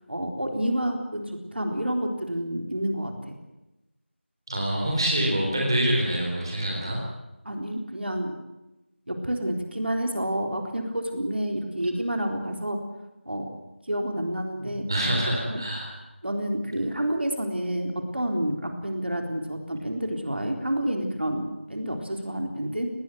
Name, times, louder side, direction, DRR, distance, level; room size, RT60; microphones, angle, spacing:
voice 1, 0.1-3.1 7.4-8.4 9.1-12.8 13.3-13.5 13.9-14.9 15.5-15.6 16.2-22.9, right 1 dB, 60° right, 4 dB, 3.8 m, -29 dB
voice 2, 4.5-7.0 14.6-16.0, right 1 dB, 20° right, -1 dB, 3.9 m, -26 dB
20.0 x 18.0 x 9.5 m, 0.98 s
figure-of-eight pair, 175°, 7 cm